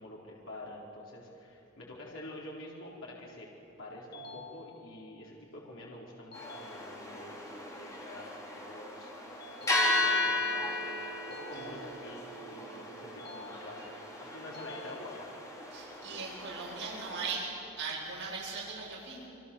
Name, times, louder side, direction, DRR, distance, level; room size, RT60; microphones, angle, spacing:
voice 1, 0.0-3.5 3.8-15.4, left 1 dB, 60° left, -4 dB, 4.4 m, -47 dB
sound 1, 4.1-5.1 6.3-7.3 9.4-10.4 11.3-12.4 13.2-14.1 14.5-15.5, left 3 dB, 45° left, 1.5 m, -50 dB
sound 2, 6.3-17.4, left 2 dB, 15° left, 3.6 m, -35 dB
voice 2, 15.7-17.5 17.8-19.3, right 4 dB, 60° right, -5 dB, 7.7 m, -39 dB
29.0 x 24.0 x 7.2 m, 2.8 s
head